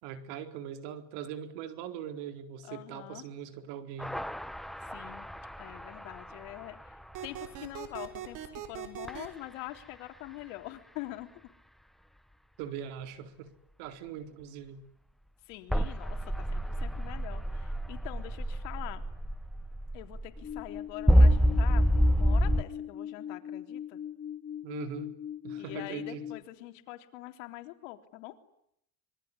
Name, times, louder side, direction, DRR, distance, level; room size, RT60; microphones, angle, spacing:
voice 1, 0.0-4.2 12.6-13.5 13.8-14.8 24.6-25.1 25.4-26.3, right 8 dB, 80° right, 8 dB, 4.3 m, -41 dB
voice 2, 2.6-3.3 4.9-5.3 5.6-7.0 7.2-11.3 15.5-19.0 19.9-21.9 22.2-24.0 25.6-28.4, left 17 dB, 85° left, 7 dB, 3.7 m, -44 dB
sound 1, 4.0-6.6 9.1-9.2 15.7-22.6, equal, ahead, 1.1 m, -27 dB
sound 2, 7.1-9.3, right 10 dB, 55° right, 5.5 m, -40 dB
sound 3, 20.4-26.4, left 9 dB, 35° left, 2.4 m, -40 dB
26.0 x 23.0 x 9.9 m, 0.74 s
supercardioid pair, 120°, 36 cm